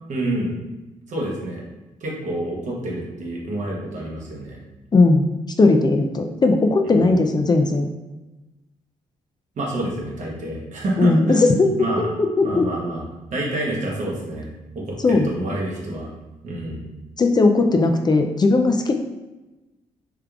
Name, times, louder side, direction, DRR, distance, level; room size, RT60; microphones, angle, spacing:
voice 1, 0.1-0.5 1.1-1.6 2.0-4.6 6.9-7.0 9.6-12.1 12.4-13.0 13.3-14.5 14.7-16.1 16.4-16.9, right 1 dB, 60° right, -3 dB, 1.1 m, -28 dB
voice 2, 4.9-5.3 5.6-7.9 11.0-11.7 12.0-12.7 15.0-15.3 17.2-19.0, left 3 dB, 30° left, 4 dB, 0.4 m, -17 dB
3.5 x 3.2 x 2.3 m, 1.1 s
supercardioid pair, 50°, 14 cm